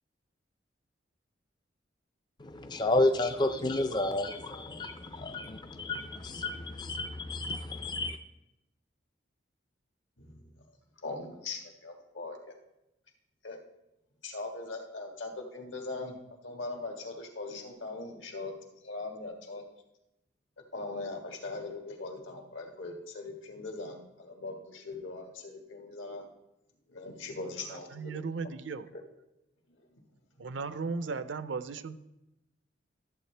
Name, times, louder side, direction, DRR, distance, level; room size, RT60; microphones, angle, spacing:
voice 1, 2.4-8.2, left 2 dB, 20° left, 0.4 m, -31 dB
voice 2, 10.2-10.5 11.0-12.5 13.4-13.6 14.2-16.1 16.4-18.5 18.8-19.6 20.7-26.2 26.9-28.5 28.9-29.0 29.7-30.0 30.7-30.8, left 3 dB, 80° left, 1.7 m, -40 dB
voice 3, 27.7-28.9 30.4-32.0, right 4 dB, 75° right, 0.5 m, -36 dB
13.5 x 7.8 x 3.3 m
head